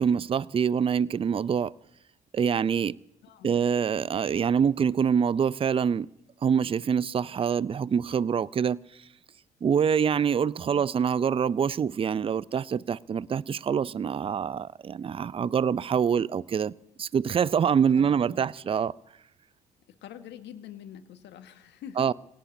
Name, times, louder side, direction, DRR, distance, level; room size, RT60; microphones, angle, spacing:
voice 1, 0.0-1.7 2.3-3.0 3.4-6.1 6.4-8.8 9.6-16.7 17.0-18.9 22.0-22.1, right 7 dB, 30° right, 0.5 m, -25 dB
voice 2, 3.2-3.7 10.6-10.9 16.1-16.4 17.9-18.5 19.9-22.1, left 9 dB, 65° left, 1.6 m, -46 dB
28.5 x 17.0 x 2.7 m
hypercardioid pair, 55°, 20 cm